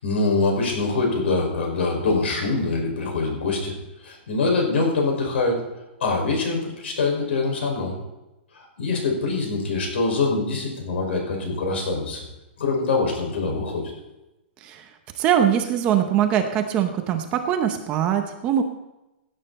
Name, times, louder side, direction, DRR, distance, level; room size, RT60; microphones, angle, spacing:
voice 1, 0.0-3.7 4.0-5.6 6.0-8.0 8.5-12.2 12.6-13.8, left 3 dB, 75° left, 1 dB, 5.6 m, -24 dB
voice 2, 15.1-18.6, right 9 dB, 20° right, 6 dB, 0.8 m, -22 dB
16.5 x 9.0 x 4.2 m, 0.97 s
hypercardioid pair, 180°, 6 cm